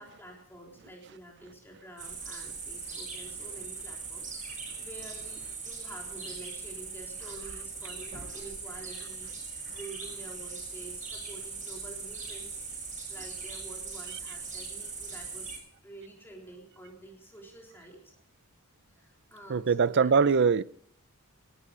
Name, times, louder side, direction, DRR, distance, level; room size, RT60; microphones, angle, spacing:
voice 1, 0.0-12.6 13.1-15.5 15.8-18.1 18.9-20.3, right 2 dB, 10° left, 3.6 m, -48 dB
sound 1, 2.0-15.6, right 4 dB, 35° right, 6.8 m, -40 dB
voice 2, 19.5-20.6, right 5 dB, 55° right, 0.5 m, -22 dB
18.5 x 12.5 x 5.1 m
head